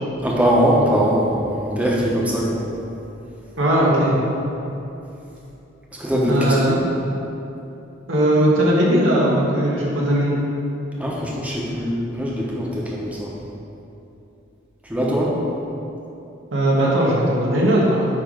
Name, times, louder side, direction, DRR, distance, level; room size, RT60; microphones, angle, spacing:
voice 1, 0.2-2.6 6.0-6.8 11.0-13.3 14.8-15.4, equal, 5° right, -5 dB, 1.1 m, -21 dB
voice 2, 3.6-4.2 6.3-6.8 8.1-10.3 16.5-18.1, right 1 dB, 85° right, -5 dB, 1.7 m, -18 dB
9.7 x 3.4 x 5.2 m, 2.9 s
head